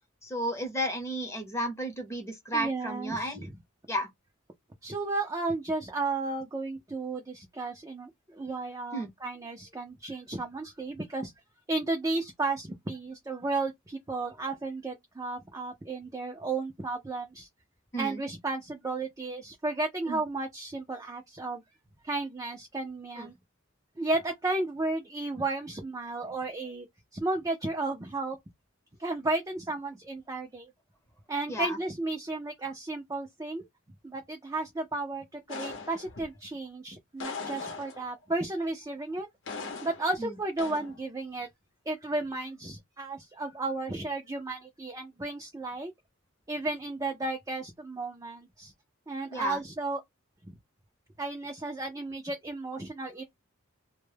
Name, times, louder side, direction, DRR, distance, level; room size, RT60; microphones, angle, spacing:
voice 1, 0.2-3.5 3.9-4.1 8.9-9.1 17.9-18.2 20.1-20.2 23.2-23.3 31.5-31.8 40.2-40.4 49.3-49.6, equal, 15° left, 0.7 m, -33 dB
voice 2, 2.5-3.5 4.8-11.3 11.7-17.5 18.0-21.6 22.0-23.3 24.0-26.9 27.1-28.4 29.0-30.7 31.3-33.6 34.0-39.3 39.8-41.5 41.9-45.9 46.5-48.7 49.1-50.0 50.4-50.5 51.2-53.2, right 2 dB, 15° right, 0.4 m, -33 dB
sound 1, 35.5-36.4 37.2-38.2 39.5-40.2 40.6-41.0, left 4 dB, 65° left, 0.8 m, -39 dB
2.1 x 2.1 x 3.2 m
head